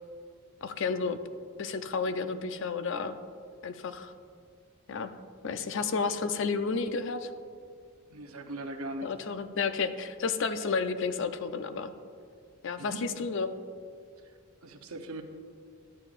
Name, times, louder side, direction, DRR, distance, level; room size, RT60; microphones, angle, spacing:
voice 1, 0.6-1.2 1.6-3.2 3.6-4.1 4.9-5.1 5.4-7.3 9.0-11.9 12.6-13.5, left 4 dB, 60° left, 10 dB, 0.4 m, -31 dB
voice 2, 8.1-9.1 12.8-13.0 14.6-15.2, right 1 dB, 80° right, 6 dB, 0.7 m, -39 dB
11.0 x 8.8 x 2.4 m, 2.2 s
head